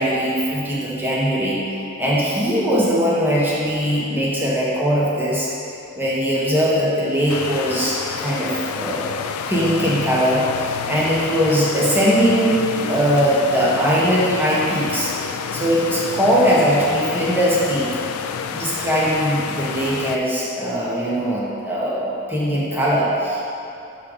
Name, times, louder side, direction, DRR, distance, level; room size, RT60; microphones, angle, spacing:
voice 1, 0.0-1.7 2.0-5.5 6.0-9.0 9.5-12.6 12.9-15.1 15.5-17.9 18.5-23.4, equal, 10° right, -7 dB, 1.2 m, -20 dB
sound 1, 7.3-20.2, left 6 dB, 70° left, 0.3 m, -29 dB
6.6 x 3.6 x 5.0 m, 2.8 s
head